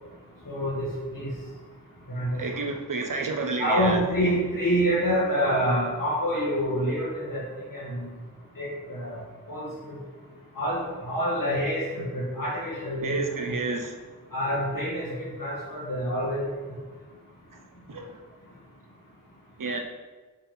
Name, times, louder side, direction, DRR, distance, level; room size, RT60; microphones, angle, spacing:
voice 1, 0.4-1.3 2.1-2.4 3.6-7.4 7.7-8.1 8.6-9.1 9.5-10.0 10.6-13.1 13.4-13.5 14.3-16.5, equal, 80° left, -6 dB, 1.9 m, -27 dB
voice 2, 2.3-4.3 13.0-14.0 17.5-17.6 17.9-18.1 19.6-19.8, right 3 dB, 70° right, 3 dB, 0.9 m, -30 dB
6.4 x 3.6 x 5.9 m, 1.3 s
cardioid pair, 40°, 33 cm